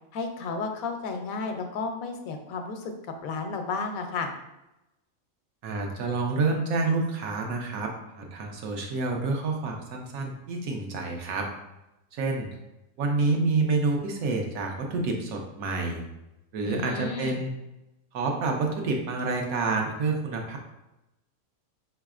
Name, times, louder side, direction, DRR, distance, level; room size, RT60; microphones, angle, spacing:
voice 1, 0.1-2.9 3.2-4.3 16.6-17.4, left 4 dB, 80° left, 5 dB, 1.0 m, -32 dB
voice 2, 5.6-11.5 12.1-12.5 13.0-16.0 16.5-17.5 18.1-20.6, right 3 dB, 85° right, 1 dB, 1.2 m, -28 dB
4.7 x 3.2 x 2.4 m, 0.93 s
omnidirectional pair, 1.5 m